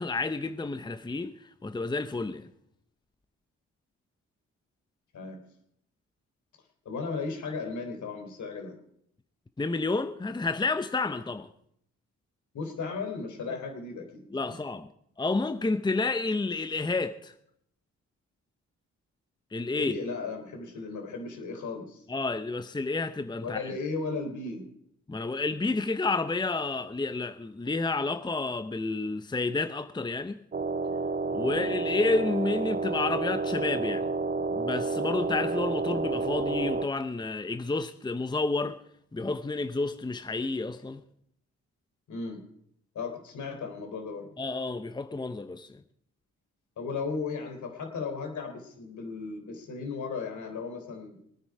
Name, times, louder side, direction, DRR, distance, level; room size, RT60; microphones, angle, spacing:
voice 1, 0.0-1.3 1.6-2.5 9.6-11.5 14.3-14.9 15.2-17.3 19.5-20.0 22.1-23.7 25.1-30.4 31.3-34.1 34.5-38.8 39.1-41.0 44.4-45.8, left 3 dB, 15° left, 0.8 m, -30 dB
voice 2, 6.9-8.8 12.5-14.6 19.8-22.0 23.4-24.6 31.4-31.7 42.1-42.4 42.9-44.3 46.8-51.2, left 4 dB, 70° left, 3.7 m, -36 dB
sound 1, 30.5-36.9, right 3 dB, 30° right, 0.8 m, -30 dB
21.5 x 9.7 x 4.9 m
supercardioid pair, 60°, 31 cm